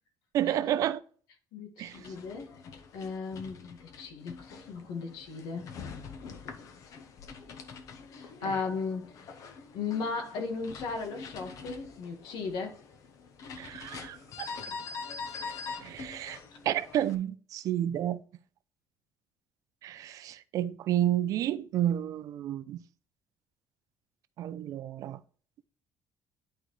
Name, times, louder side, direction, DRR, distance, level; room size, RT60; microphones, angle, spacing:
voice 1, 0.3-1.0 1.8-2.0 8.5-8.6 13.6-14.5 15.8-16.4 16.6-18.2 19.8-22.8 24.4-25.2, right 11 dB, 55° right, 0.6 m, -30 dB
voice 2, 1.5-2.5 2.9-5.7 8.1-9.3 9.7-12.8 14.4-14.6, left 4 dB, 80° left, 1.6 m, -36 dB
sound 1, 1.8-17.2, left 5 dB, 50° left, 0.9 m, -45 dB
11.0 x 4.2 x 3.2 m
cardioid pair, 160°, 7 cm